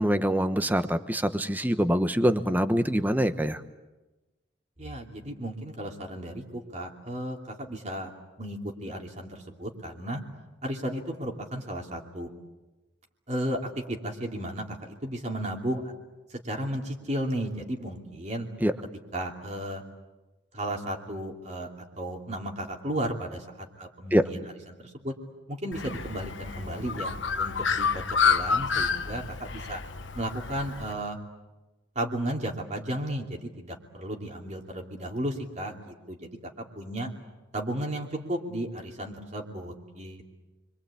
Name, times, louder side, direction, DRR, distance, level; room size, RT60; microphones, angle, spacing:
voice 1, 0.0-3.6 18.6-18.7 24.1-24.2, equal, 10° right, 10 dB, 1.1 m, -24 dB
voice 2, 4.8-8.1 8.4-10.2 10.6-12.3 13.3-15.9 16.3-18.5 19.1-19.8 20.5-21.7 22.0-25.1 25.5-29.8 30.1-31.2 31.9-36.3 36.6-37.1 37.5-40.4, right 1 dB, 35° right, 1 dB, 2.9 m, -34 dB
Bird, 25.7-30.9, left 5 dB, 65° left, 1.3 m, -29 dB
29.5 x 23.5 x 8.6 m, 1.1 s
head